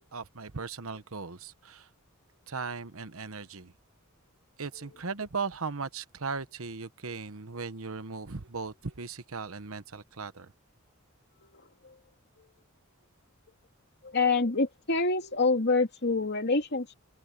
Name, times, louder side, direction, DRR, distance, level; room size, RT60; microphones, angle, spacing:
voice 1, 0.1-1.9 2.5-3.7 4.6-10.5, right 4 dB, 70° right, 1.1 m, -37 dB
voice 2, 11.4-12.0 12.4-12.5 14.0-16.9, left 3 dB, 50° left, 2.8 m, -27 dB
open air
head